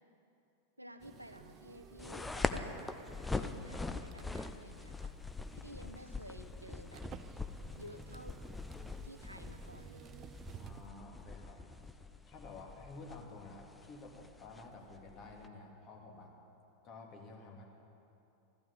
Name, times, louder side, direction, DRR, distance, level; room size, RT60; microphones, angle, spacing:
voice 1, 0.8-2.7 3.3-5.2 5.5-7.0 7.8-8.4 9.0-10.3, equal, 85° right, 8 dB, 0.9 m, -52 dB
sound 1, 1.0-10.9, right 8 dB, 30° right, 0.6 m, -55 dB
sound 2, 2.0-15.5, left 3 dB, 5° left, 0.7 m, -43 dB
voice 2, 10.5-11.8 12.3-16.3 16.8-17.6, left 3 dB, 35° left, 0 dB, 2.7 m, -51 dB
15.0 x 12.0 x 7.1 m, 2.8 s
figure-of-eight pair, 90°, 0 cm